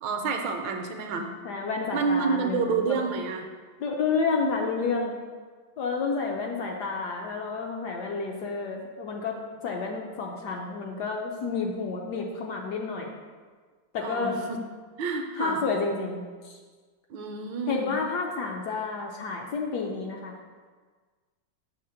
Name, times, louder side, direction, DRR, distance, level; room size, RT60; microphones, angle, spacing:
voice 1, 0.0-1.3 1.9-3.4 14.0-14.6 15.0-15.6 17.1-17.9, right 5 dB, 75° right, 4 dB, 1.2 m, -29 dB
voice 2, 1.4-3.0 3.8-5.2 5.8-9.4 9.6-13.1 13.9-14.4 15.4-16.6 17.7-20.4, left 4 dB, 70° left, 1 dB, 1.0 m, -30 dB
6.5 x 3.3 x 5.7 m, 1.5 s
omnidirectional pair, 2.3 m